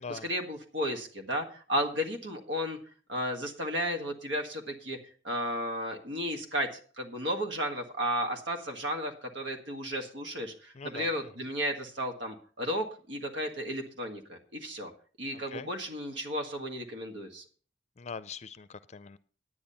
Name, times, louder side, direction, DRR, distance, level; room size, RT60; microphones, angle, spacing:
voice 1, 0.0-2.8 3.1-5.0 5.2-6.7 7.0-14.9 15.2-17.4, equal, 90° right, 4 dB, 1.7 m, -33 dB
voice 2, 10.7-11.1 15.3-15.7 18.0-19.2, left 5 dB, 40° left, 15 dB, 0.5 m, -42 dB
10.5 x 9.5 x 5.6 m, 0.40 s
head